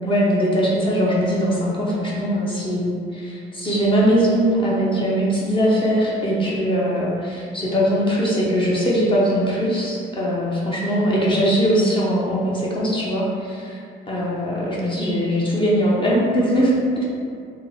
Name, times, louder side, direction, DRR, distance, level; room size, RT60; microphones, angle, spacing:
voice 1, 0.0-13.8 14.1-16.7, equal, 25° left, -6 dB, 0.7 m, -21 dB
2.8 x 2.1 x 3.9 m, 2.3 s
cardioid pair, 90°, 20 cm